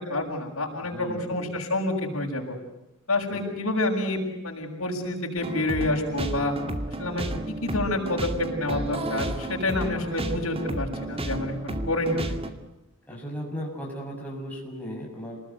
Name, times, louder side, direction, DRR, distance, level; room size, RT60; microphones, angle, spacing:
voice 1, 0.1-2.6 3.1-6.5 7.0-12.4, left 2 dB, 80° left, -2 dB, 7.0 m, -28 dB
voice 2, 0.8-1.5 3.3-3.4 13.1-15.4, equal, 5° left, -3 dB, 7.3 m, -36 dB
sound 1, 5.4-12.5, right 1 dB, 30° right, 2.2 m, -32 dB
29.0 x 20.0 x 9.4 m, 0.99 s
head